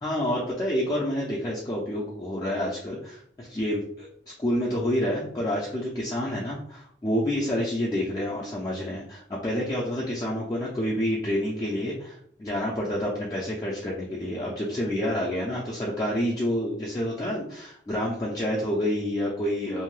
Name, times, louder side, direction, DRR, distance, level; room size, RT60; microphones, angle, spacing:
voice 1, 0.0-4.1 4.4-19.8, equal, 20° left, -5 dB, 0.4 m, -28 dB
2.6 x 2.1 x 3.1 m, 0.64 s
head